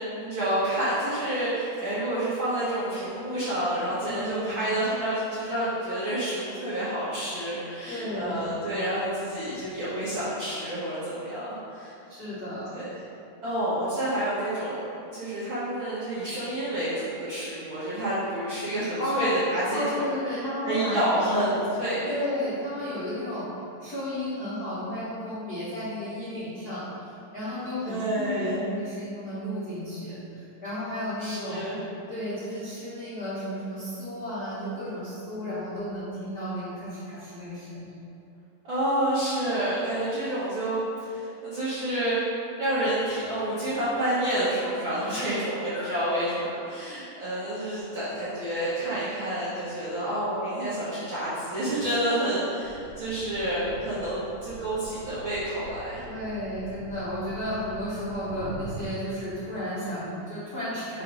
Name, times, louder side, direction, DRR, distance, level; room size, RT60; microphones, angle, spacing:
voice 1, 0.0-11.9 12.7-13.0 13.4-14.9 15.1-22.1 27.8-28.6 31.2-31.8 38.6-42.2 42.6-56.0, right 1 dB, 85° right, -12 dB, 1.0 m, -29 dB
voice 2, 3.9-4.6 7.9-8.5 12.1-12.8 19.0-19.3 19.7-21.4 22.0-23.5 23.8-31.6 32.1-37.9 45.1-45.4 45.7-45.9 46.5-46.7 56.0-61.0, left 1 dB, 45° left, -13 dB, 1.2 m, -33 dB
sound 1, 52.6-58.9, right 3 dB, 65° right, 1.8 m, -43 dB
5.3 x 5.0 x 5.1 m, 2.9 s
omnidirectional pair, 4.4 m